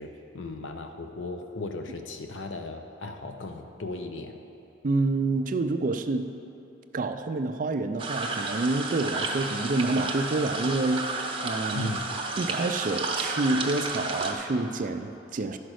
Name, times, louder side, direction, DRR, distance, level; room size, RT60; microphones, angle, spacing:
voice 1, 0.0-4.4 11.7-12.1, left 3 dB, 80° left, 5 dB, 0.7 m, -37 dB
voice 2, 4.8-6.3 6.9-11.9 12.4-15.6, right 2 dB, 45° right, 8 dB, 0.4 m, -28 dB
sound 1, 8.0-14.3, right 3 dB, 25° right, 0.8 m, -31 dB
11.0 x 5.1 x 6.3 m, 2.7 s
head